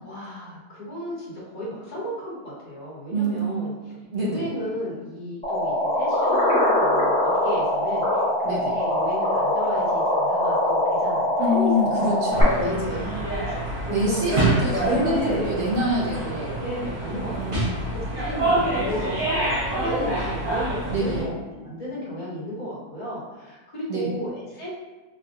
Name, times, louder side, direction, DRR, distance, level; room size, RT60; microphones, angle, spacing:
voice 1, 0.0-3.7 4.1-13.5 13.8-14.3 14.8-15.7 16.6-17.6 17.9-24.7, equal, 25° left, -8 dB, 1.3 m, -33 dB
voice 2, 3.1-3.7 4.1-4.5 8.4-8.8 11.4-13.3 13.9-16.6 17.1-17.9 20.9-21.2 23.9-24.1, equal, 60° right, -4 dB, 0.7 m, -27 dB
sound 1, 5.4-12.4, left 1 dB, 5° left, 0.7 m, -22 dB
sound 2, 12.3-21.2, right 1 dB, 35° right, 1.0 m, -26 dB
3.3 x 2.8 x 2.4 m, 1.2 s
omnidirectional pair, 1.7 m